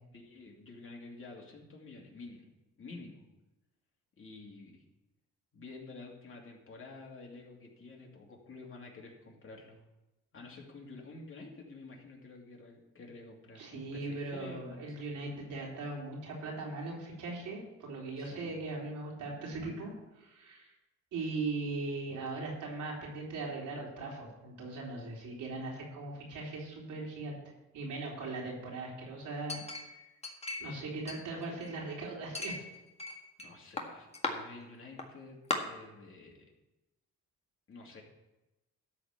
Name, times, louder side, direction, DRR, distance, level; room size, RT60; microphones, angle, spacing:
voice 1, 0.1-2.5 2.8-3.3 4.2-4.8 5.5-9.8 10.3-14.9 18.1-18.6 33.4-36.4 37.7-38.0, left 3 dB, 45° left, -1 dB, 2.7 m, -50 dB
voice 2, 13.6-19.9 20.2-20.7 21.1-27.4 27.7-29.6 30.6-32.7, right 3 dB, 80° right, -2 dB, 3.8 m, -39 dB
Chink clink, 29.5-30.8 31.1-31.9 32.3-33.5 33.8-34.3 35.0-35.1 35.5-35.6, left 2 dB, 20° left, 1.7 m, -37 dB
13.0 x 4.3 x 8.1 m, 1.0 s
cardioid pair, 90°, 30 cm